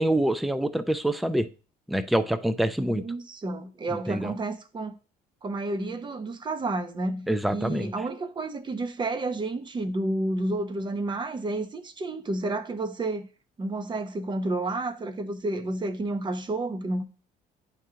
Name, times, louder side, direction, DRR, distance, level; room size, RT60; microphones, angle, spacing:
voice 1, 0.0-1.5 1.9-3.0 4.1-4.3 7.3-7.9, right 1 dB, ahead, 0.4 m, -25 dB
voice 2, 2.8-5.0 5.4-13.3 13.6-17.0, right 2 dB, 25° right, 0.8 m, -30 dB
10.0 x 3.7 x 2.8 m
cardioid pair, 110°, 17 cm